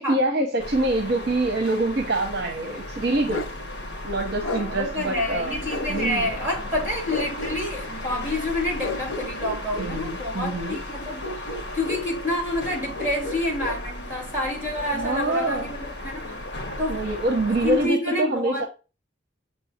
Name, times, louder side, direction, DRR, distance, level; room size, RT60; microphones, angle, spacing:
voice 1, 0.0-3.5 4.0-5.6 5.9-6.3 9.8-10.8 14.9-15.7 16.9-18.6, right 2 dB, 55° right, 0.9 m, -25 dB
sound 1, 0.6-17.9, left 1 dB, 60° left, 1.4 m, -35 dB
Bark, 3.3-3.6 4.4-4.7 5.7-6.4 7.1-7.6 8.8-9.9 11.2-12.1 12.9-13.8, left 1 dB, 85° left, 0.9 m, -32 dB
voice 2, 4.4-17.0 17.6-18.7, left 1 dB, 10° right, 4.1 m, -28 dB
7.7 x 3.3 x 4.3 m
head